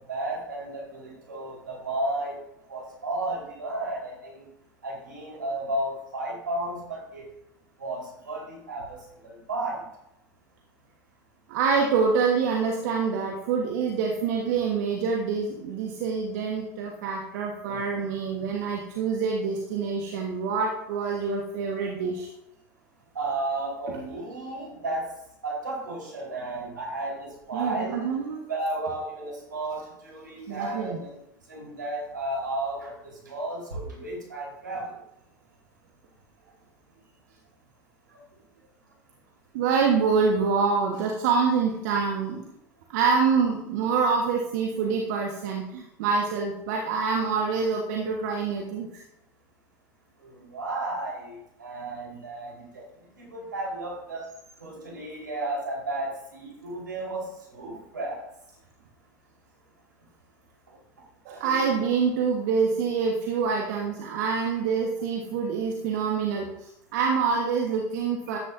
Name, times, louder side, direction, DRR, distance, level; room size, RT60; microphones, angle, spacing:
voice 1, 0.1-2.4 2.7-4.4 4.8-7.2 7.8-9.8 18.4-18.5 23.1-25.1 25.4-28.0 28.5-31.1 31.5-34.9 50.2-52.8 53.2-54.2 54.6-58.2 68.3-68.4, right 2 dB, 90° right, -2 dB, 4.4 m, -33 dB
voice 2, 11.5-22.3 27.5-28.4 30.5-31.0 39.5-42.4 42.9-49.0 61.2-68.4, right 5 dB, 65° right, 0 dB, 1.5 m, -26 dB
14.0 x 10.0 x 2.7 m, 0.82 s
hypercardioid pair, 80°, 10 cm